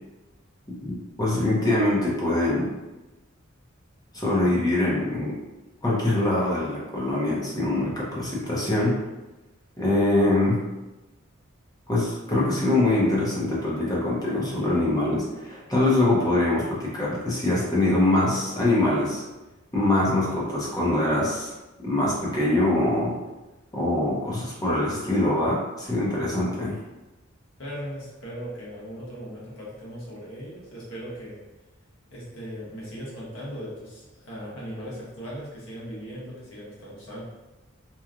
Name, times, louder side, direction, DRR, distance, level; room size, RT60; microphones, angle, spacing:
voice 1, 0.8-2.7 4.1-5.3 5.8-9.0 9.8-10.6 11.9-19.2 19.7-21.5 21.8-23.1 23.7-26.8, left 2 dB, 20° left, -5 dB, 0.7 m, -23 dB
voice 2, 27.6-31.4 32.1-37.2, equal, 70° left, -7 dB, 1.0 m, -38 dB
2.9 x 2.3 x 2.4 m, 1.1 s
head